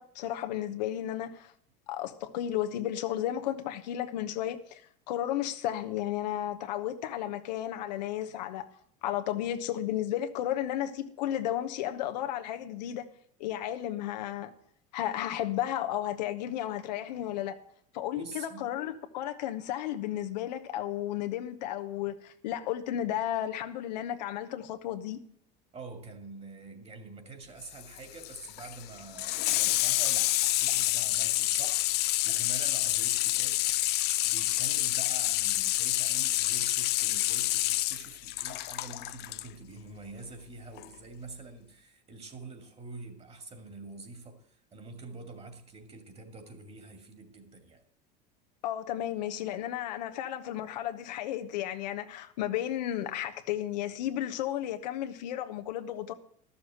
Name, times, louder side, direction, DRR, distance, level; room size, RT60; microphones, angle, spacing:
voice 1, 0.0-1.5 1.9-4.8 5.1-8.6 9.0-13.1 13.4-14.5 14.9-17.6 17.9-25.2 48.6-56.1, left 12 dB, 85° left, 1.0 m, -33 dB
voice 2, 18.2-18.8 25.7-33.6 34.2-47.8, right 3 dB, 30° right, 2.5 m, -46 dB
Water tap faucet / Sink (filling or washing), 27.6-39.5 40.8-40.9, left 17 dB, 55° left, 0.5 m, -28 dB
12.0 x 7.0 x 7.8 m
supercardioid pair, 105°, 21 cm